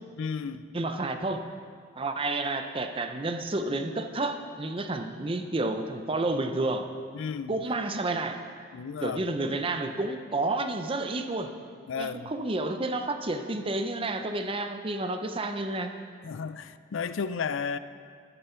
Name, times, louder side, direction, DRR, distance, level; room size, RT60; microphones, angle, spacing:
voice 1, 0.2-0.6 7.1-7.6 8.7-9.2 11.9-12.3 16.2-17.8, left 6 dB, 70° left, 13 dB, 0.4 m, -33 dB
voice 2, 0.7-1.4 2.0-6.9 7.5-8.4 9.0-11.5 12.0-15.9, right 2 dB, 25° right, 7 dB, 0.6 m, -30 dB
12.5 x 11.0 x 4.5 m, 2.1 s
head